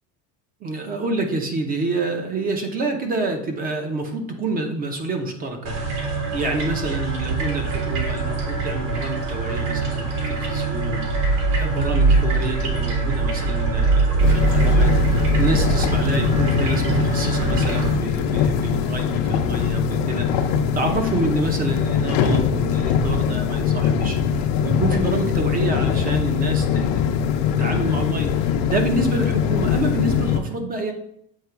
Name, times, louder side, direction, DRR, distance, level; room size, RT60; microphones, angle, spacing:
voice 1, 0.6-27.2 27.6-30.9, right 2 dB, 25° right, 4 dB, 0.7 m, -28 dB
sound 1, 5.7-17.9, right 3 dB, 55° right, 1.6 m, -22 dB
sound 2, 14.2-30.4, left 7 dB, 70° left, 0.8 m, -22 dB
7.4 x 2.9 x 4.5 m, 0.70 s
cardioid pair, 160°, 38 cm